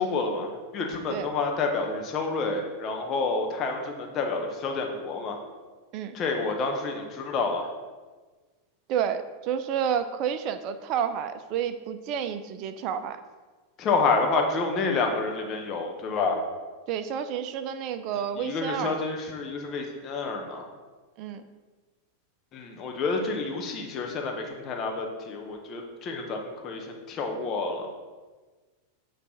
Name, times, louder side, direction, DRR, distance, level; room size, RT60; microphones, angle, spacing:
voice 1, 0.0-5.4 6.1-7.7 13.8-16.4 18.3-20.6 22.5-27.9, left 4 dB, 35° left, 2 dB, 1.2 m, -29 dB
voice 2, 8.9-13.2 16.9-19.0 21.2-21.4, right 8 dB, 45° right, 10 dB, 0.6 m, -30 dB
8.5 x 3.3 x 5.7 m, 1.3 s
hypercardioid pair, 95°, 0 cm